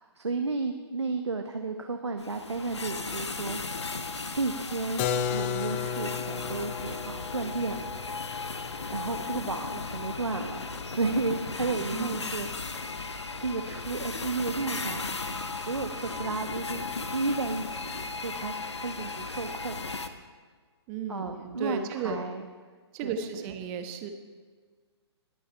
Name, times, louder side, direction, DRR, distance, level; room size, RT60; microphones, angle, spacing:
voice 1, 0.0-3.6 3.9-4.0 4.3-7.9 8.9-12.9 13.4-16.9 17.1-19.9 21.1-22.4 23.0-23.5, right 3 dB, 80° right, 5 dB, 1.0 m, -33 dB
sound 1, 2.2-20.1, left 4 dB, 80° left, 1.0 m, -36 dB
Keyboard (musical), 5.0-10.6, left 8 dB, 25° left, 0.5 m, -35 dB
voice 2, 11.9-12.3 20.9-22.2 22.9-24.1, right 7 dB, 25° right, 7 dB, 1.1 m, -34 dB
21.0 x 8.4 x 4.5 m, 1.5 s
figure-of-eight pair, 130°, 14 cm